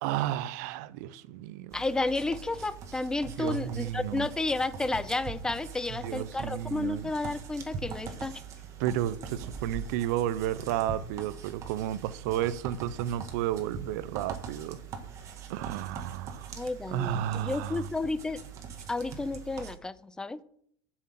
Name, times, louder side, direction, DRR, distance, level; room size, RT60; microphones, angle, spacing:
voice 1, 0.0-1.8 3.4-4.3 6.0-7.1 8.8-14.8 15.5-16.5 16.9-17.9, right 12 dB, 75° right, 0.6 m, -32 dB
voice 2, 1.7-8.4 16.6-18.4 18.9-20.4, left 2 dB, 10° left, 0.4 m, -32 dB
sound 1, 1.7-19.8, right 6 dB, 35° right, 1.5 m, -42 dB
7.6 x 6.2 x 7.5 m
cardioid pair, 155°, 9 cm